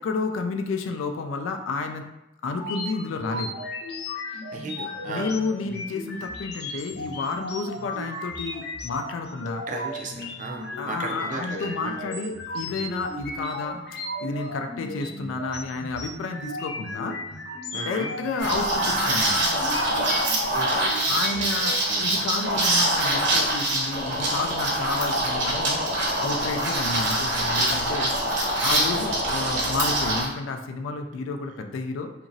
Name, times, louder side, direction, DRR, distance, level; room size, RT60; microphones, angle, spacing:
voice 1, 0.0-2.0 2.4-3.5 5.1-9.6 10.7-13.8 14.2-17.2 17.8-19.4 21.1-28.1 28.6-32.1, left 3 dB, 90° left, 5 dB, 0.3 m, -31 dB
sound 1, 2.5-21.7, left 1 dB, 55° left, 0.7 m, -35 dB
voice 2, 4.3-5.3 9.7-12.0 17.7-18.1 20.6-21.6 21.8-22.1 29.0-29.1 29.3-29.7, right 3 dB, 40° right, 1 dB, 0.3 m, -36 dB
Liquid, 18.4-30.3, right 1 dB, 60° right, 0.8 m, -24 dB
2.9 x 2.5 x 2.6 m, 0.93 s
head